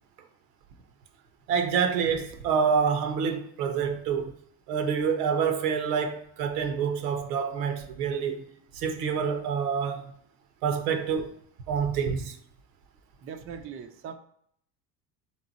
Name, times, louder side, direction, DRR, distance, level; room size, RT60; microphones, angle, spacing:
voice 1, 1.5-4.3 4.7-8.5 8.7-10.1 10.6-11.3 11.7-12.4, right 6 dB, 75° right, 0.8 m, -27 dB
voice 2, 13.2-14.1, right 7 dB, 30° right, 0.5 m, -40 dB
3.6 x 3.1 x 3.9 m
hypercardioid pair, 70°, 47 cm